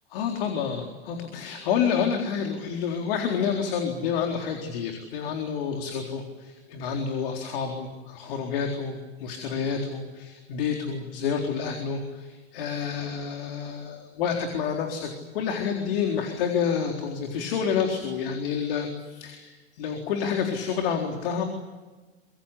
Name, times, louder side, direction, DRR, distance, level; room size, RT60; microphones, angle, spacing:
voice 1, 0.1-21.4, left 7 dB, 55° left, 3 dB, 4.1 m, -29 dB
26.0 x 24.0 x 8.3 m, 1.2 s
hypercardioid pair, 100°, 33 cm